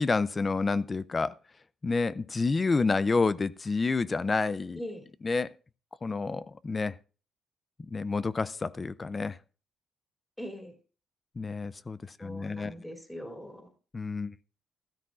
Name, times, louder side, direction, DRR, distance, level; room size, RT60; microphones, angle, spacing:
voice 1, 0.0-1.3 1.8-4.8 5.2-5.5 6.0-6.9 7.9-9.4 11.4-12.7 13.9-14.3, left 4 dB, 30° left, 0.4 m, -29 dB
voice 2, 10.4-10.7 12.2-13.7, equal, 10° left, 2.7 m, -41 dB
13.5 x 13.0 x 2.4 m
cardioid pair, 90°, 0 cm